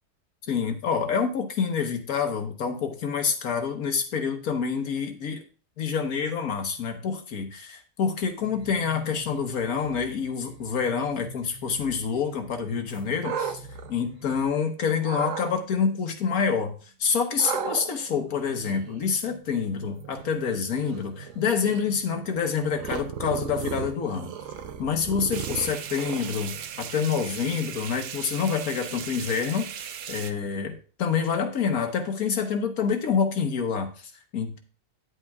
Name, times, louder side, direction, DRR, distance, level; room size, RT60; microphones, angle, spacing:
voice 1, 0.5-5.4 5.8-13.6 13.9-24.3 24.8-34.6, left 6 dB, 70° left, 6 dB, 1.6 m, -27 dB
sound 1, 8.4-14.5, right 1 dB, 30° right, 3.4 m, -47 dB
sound 2, 12.9-14.6 15.0-15.5 17.4-26.9, right 8 dB, 65° right, 1.0 m, -37 dB
sound 3, 25.3-30.3, right 9 dB, 90° right, 1.2 m, -38 dB
10.0 x 8.0 x 2.4 m, 0.38 s
omnidirectional pair, 1.6 m